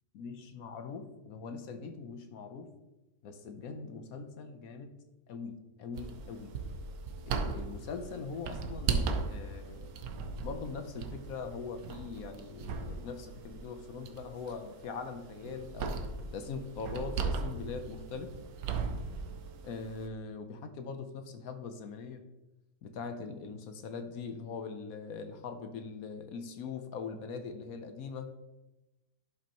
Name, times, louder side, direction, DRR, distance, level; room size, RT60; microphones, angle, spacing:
voice 1, 0.1-2.7 3.2-5.0 5.3-6.6 7.3-10.0 10.4-16.0 16.3-18.3 19.6-22.3 22.8-28.3, left 5 dB, 65° left, 7 dB, 1.1 m, -42 dB
sound 1, 6.0-20.1, right 4 dB, 70° right, 1.1 m, -38 dB
11.5 x 5.7 x 3.0 m, 1.0 s
omnidirectional pair, 1.7 m